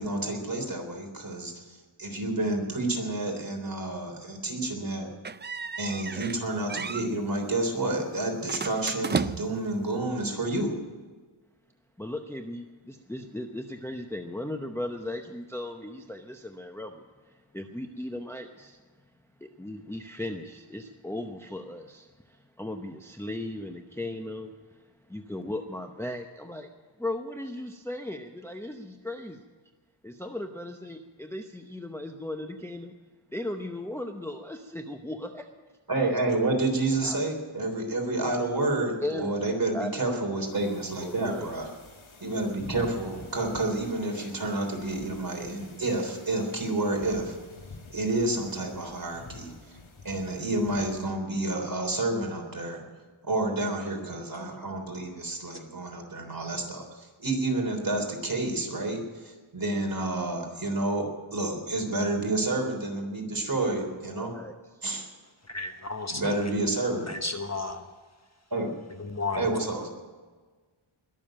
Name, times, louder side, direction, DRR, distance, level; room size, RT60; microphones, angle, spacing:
voice 1, 0.0-5.1 5.8-10.7 35.9-41.7 42.2-47.4 47.9-49.7 50.0-52.8 53.2-64.3 64.8-65.1 66.1-67.1 68.5-68.7 69.3-69.9, right 2 dB, 45° right, 2 dB, 3.6 m, -29 dB
sound 1, 5.2-6.4 6.7-7.1 8.5-9.7, right 5 dB, 25° right, 0.4 m, -32 dB
voice 2, 12.0-18.8 19.4-24.8 25.1-26.7 27.0-29.4 30.0-33.0 33.3-35.5 36.0-36.1 37.0-37.2 39.0-39.3 39.7-39.9 41.0-41.5 64.3-64.8, left 1 dB, 5° left, 4 dB, 0.8 m, -37 dB
sound 2, 40.5-51.2, left 3 dB, 70° left, 2.3 m, -48 dB
voice 3, 65.5-66.5 67.1-67.8 69.0-69.4, left 3 dB, 35° left, 6 dB, 1.1 m, -33 dB
21.0 x 7.1 x 9.0 m, 1.4 s
wide cardioid pair, 85°, 49 cm